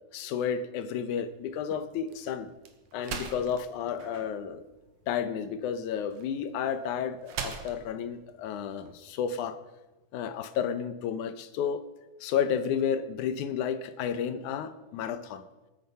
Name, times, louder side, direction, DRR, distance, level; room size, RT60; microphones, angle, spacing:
voice 1, 0.1-2.5 2.9-4.6 5.1-9.6 10.1-11.8 12.2-15.4, left 8 dB, 85° left, 11 dB, 2.4 m, -31 dB
sound 1, 1.2-9.4, right 6 dB, 80° right, 2.8 m, -44 dB
20.0 x 9.4 x 5.6 m, 1.1 s
omnidirectional pair, 3.4 m